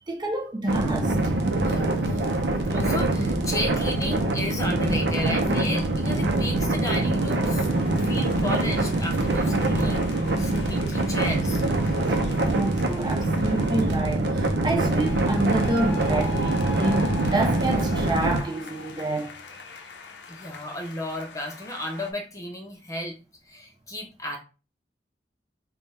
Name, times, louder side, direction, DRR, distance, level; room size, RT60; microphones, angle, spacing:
voice 1, 0.1-1.2 12.1-19.4, right 2 dB, 25° right, 0.6 m, -28 dB
sound 1, 0.7-18.4, right 2 dB, 65° right, 0.6 m, -24 dB
voice 2, 1.6-7.7 8.0-10.1 10.4-11.6 20.3-23.2 23.4-24.4, left 1 dB, 20° left, 0.7 m, -34 dB
sound 2, 6.7-14.0 14.7-22.1, left 3 dB, 75° left, 0.6 m, -41 dB
3.5 x 2.3 x 4.1 m
head